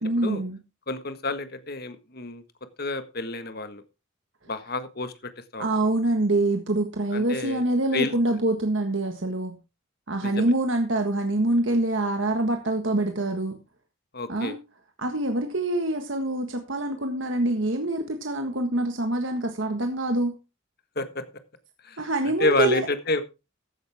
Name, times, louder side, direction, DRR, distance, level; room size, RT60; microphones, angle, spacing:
voice 1, 0.0-0.6 5.6-9.5 10.1-13.5 14.3-14.6 15.0-20.3 22.0-22.8, right 2 dB, 65° right, 5 dB, 1.6 m, -25 dB
voice 2, 0.9-2.4 2.8-3.8 4.5-5.7 7.1-7.6 7.9-8.1 10.2-10.5 14.1-14.5 20.9-21.2 21.8-23.2, left 3 dB, 50° left, 10 dB, 1.6 m, -29 dB
15.0 x 10.5 x 3.6 m, 0.29 s
head